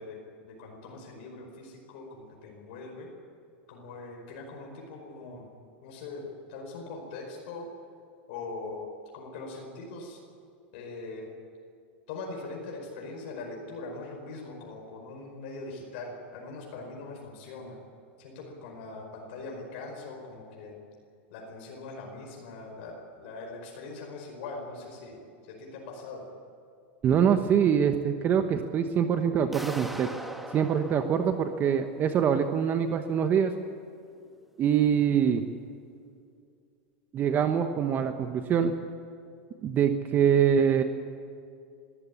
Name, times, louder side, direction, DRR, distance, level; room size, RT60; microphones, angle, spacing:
voice 1, 0.0-3.1 3.7-5.5 5.8-7.7 8.3-8.9 9.1-10.2 10.7-11.3 12.1-17.8 18.2-20.8 21.3-26.3, left 3 dB, 65° left, 0 dB, 5.1 m, -41 dB
voice 2, 27.0-30.1 30.5-33.5 34.6-35.4 37.1-38.7 39.6-40.8, right 8 dB, 30° right, 8 dB, 1.1 m, -24 dB
sound 1, 29.5-32.4, right 1 dB, ahead, 1.4 m, -41 dB
23.0 x 14.5 x 8.7 m, 2.4 s
supercardioid pair, 130°, 6 cm